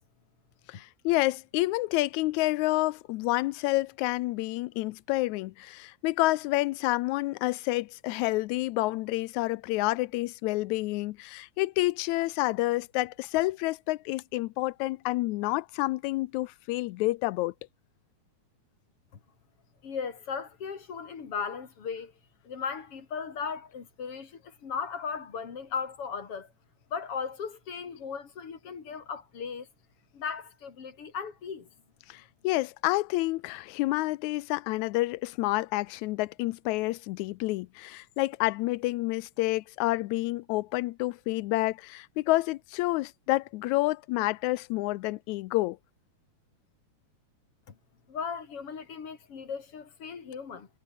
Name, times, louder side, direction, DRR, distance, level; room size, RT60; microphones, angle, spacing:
voice 1, 0.7-17.5 32.1-45.8, left 19 dB, 85° left, 1.9 m, -29 dB
voice 2, 19.8-22.1 22.4-26.5 26.9-29.7 30.1-31.7 47.7-47.8 48.1-50.7, left 6 dB, 50° left, 3.3 m, -37 dB
omnidirectional pair, 3.4 m